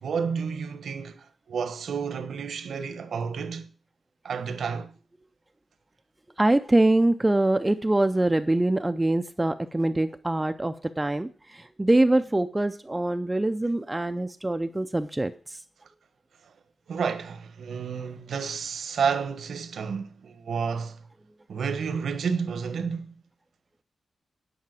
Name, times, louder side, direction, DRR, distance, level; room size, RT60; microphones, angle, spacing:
voice 1, 0.0-3.7 4.2-4.9 16.9-21.0 21.5-23.1, right 6 dB, 70° right, 1.1 m, -30 dB
voice 2, 6.4-15.6, right 2 dB, 10° right, 0.5 m, -24 dB
10.5 x 5.8 x 7.5 m
wide cardioid pair, 155°, 0 cm